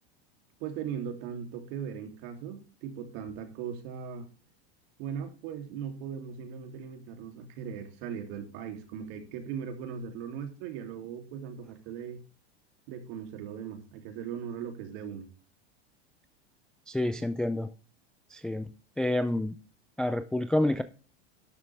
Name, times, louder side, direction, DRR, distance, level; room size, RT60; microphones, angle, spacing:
voice 1, 0.6-4.3 5.0-12.2 12.9-15.3, right 7 dB, 55° right, 3.1 m, -39 dB
voice 2, 16.9-17.7 18.3-18.7 19.0-19.5 20.0-20.8, left 1 dB, ahead, 0.4 m, -28 dB
12.0 x 7.4 x 3.5 m
supercardioid pair, 140°, 34 cm